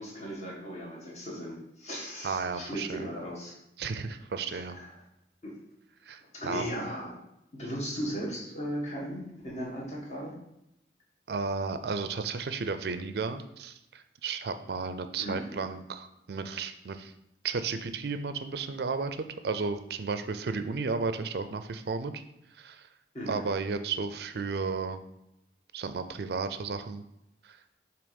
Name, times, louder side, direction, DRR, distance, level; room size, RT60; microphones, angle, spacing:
voice 1, 0.0-3.6 4.5-4.9 5.4-5.6 6.3-7.1 7.5-10.3 15.2-15.6 23.1-23.5, equal, 40° left, -3 dB, 1.7 m, -37 dB
voice 2, 2.2-3.1 3.8-4.8 6.0-6.6 11.3-17.1 17.4-22.2 22.6-22.9 23.3-25.0 25.7-27.0 27.4-27.6, right 4 dB, 60° right, 10 dB, 0.4 m, -33 dB
7.0 x 3.0 x 5.2 m, 0.84 s
head